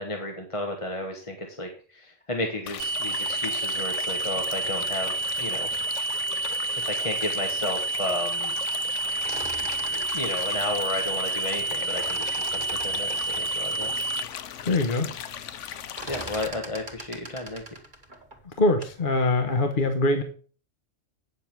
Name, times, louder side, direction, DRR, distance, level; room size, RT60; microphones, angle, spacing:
voice 1, 0.0-5.7 6.8-8.5 9.5-14.1 16.1-17.6, left 1 dB, 25° left, 3 dB, 1.3 m, -33 dB
sound 1, 2.7-16.5, left 9 dB, 80° left, 1.0 m, -38 dB
sound 2, 2.8-14.2, right 3 dB, 85° right, 1.4 m, -29 dB
sound 3, 9.0-11.6 11.8-14.0 14.5-14.6 14.8-15.2 15.5-19.0, right 1 dB, 40° right, 1.9 m, -41 dB
voice 2, 14.6-15.1 18.6-20.2, left 2 dB, 45° left, 6 dB, 1.2 m, -23 dB
8.9 x 7.0 x 5.9 m, 0.42 s
omnidirectional pair, 1.2 m